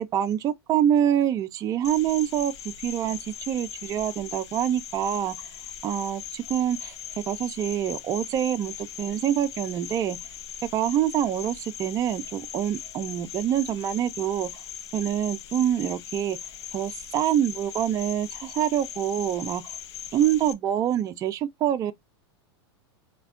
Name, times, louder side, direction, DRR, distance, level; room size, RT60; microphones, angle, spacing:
voice 1, 0.0-5.3 5.8-10.2 10.7-14.6 14.9-16.4 16.7-19.8 20.1-21.9, right 10 dB, 25° right, 0.3 m, -26 dB
Cricket, 1.8-20.5, left 9 dB, 75° left, 0.5 m, -40 dB
3.2 x 2.2 x 2.3 m
hypercardioid pair, 120°, 14 cm